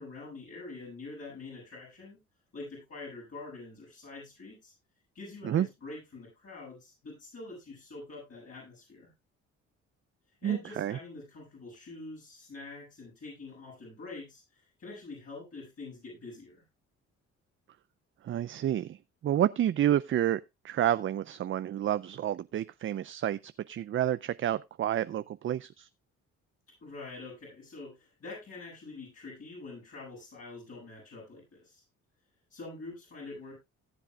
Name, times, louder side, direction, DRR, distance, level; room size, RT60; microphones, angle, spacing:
voice 1, 0.0-2.2 2.5-4.7 5.1-9.1 10.4-16.6 26.8-31.8 32.5-33.5, left 3 dB, 50° left, 7.8 m, -45 dB
voice 2, 10.4-11.0 18.2-19.0 19.2-25.9, right 11 dB, 45° right, 0.4 m, -29 dB
18.0 x 7.6 x 2.3 m
cardioid pair, 75°, 30 cm